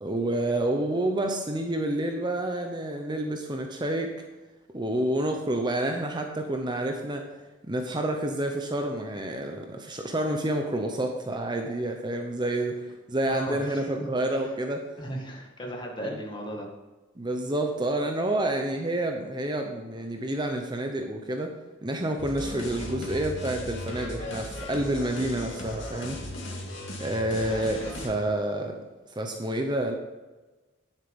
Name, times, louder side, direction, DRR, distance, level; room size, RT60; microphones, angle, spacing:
voice 1, 0.0-4.2 4.7-7.3 7.6-14.8 16.0-16.2 17.2-21.5 21.8-26.3 27.0-28.8 29.2-29.9, right 1 dB, 20° right, 4 dB, 0.8 m, -29 dB
voice 2, 13.3-13.9 15.0-16.7, equal, 25° left, 0 dB, 1.8 m, -36 dB
sound 1, 22.2-28.1, left 1 dB, 70° left, 2.4 m, -37 dB
10.0 x 7.5 x 5.3 m, 1.2 s
head